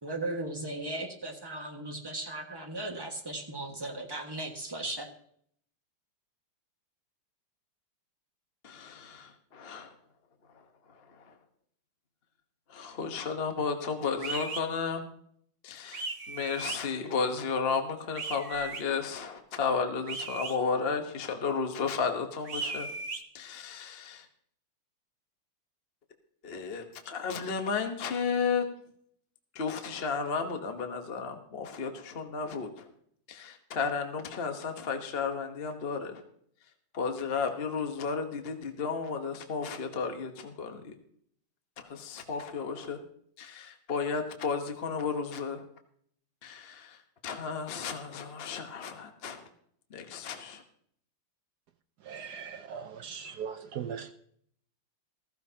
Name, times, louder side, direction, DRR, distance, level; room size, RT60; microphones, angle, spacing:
voice 1, 0.0-5.1, right 2 dB, 15° right, 1.3 m, -37 dB
voice 2, 8.6-9.0 9.7-9.8 11.1-11.3 12.7-15.0 15.6-22.9 23.3-24.3 26.4-28.6 29.5-32.9 33.3-36.2 36.9-40.9 41.8-43.0 43.4-45.6 46.4-49.4 49.9-50.6, left 5 dB, 35° left, 1.0 m, -33 dB
sound 1, 14.2-14.6 15.9-16.8 18.1-18.8 20.1-20.6 22.4-23.2, right 4 dB, 45° right, 0.9 m, -36 dB
voice 3, 52.0-54.1, right 7 dB, 70° right, 1.0 m, -39 dB
15.0 x 14.5 x 2.8 m
omnidirectional pair, 2.4 m